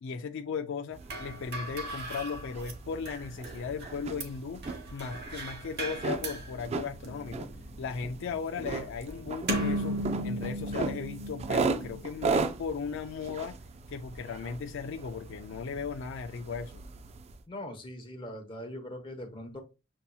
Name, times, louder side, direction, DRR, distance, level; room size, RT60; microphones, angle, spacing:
voice 1, 0.0-4.6 4.9-7.5 7.8-10.0 10.2-13.6 13.9-16.8, left 5 dB, 65° left, 0.4 m, -37 dB
sound 1, 0.9-17.4, right 4 dB, 30° right, 0.3 m, -37 dB
sound 2, 1.0-12.0, right 1 dB, 55° right, 0.9 m, -37 dB
voice 2, 17.5-19.6, left 1 dB, 25° left, 1.0 m, -41 dB
6.8 x 2.7 x 2.3 m
head